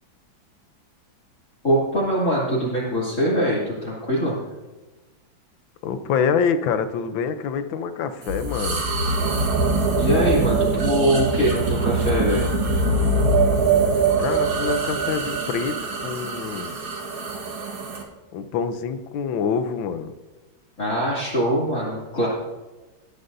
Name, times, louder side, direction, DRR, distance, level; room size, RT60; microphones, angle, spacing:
voice 1, 1.6-4.3 10.0-12.5 20.8-22.3, equal, 40° left, -8 dB, 3.0 m, -22 dB
voice 2, 5.8-8.9 14.2-15.8 16.0-16.8 18.3-20.1, left 6 dB, 75° left, 10 dB, 1.5 m, -26 dB
sound 1, 8.2-18.0, right 3 dB, 85° right, 2.5 m, -23 dB
18.0 x 11.5 x 2.7 m, 1.2 s
omnidirectional pair, 2.2 m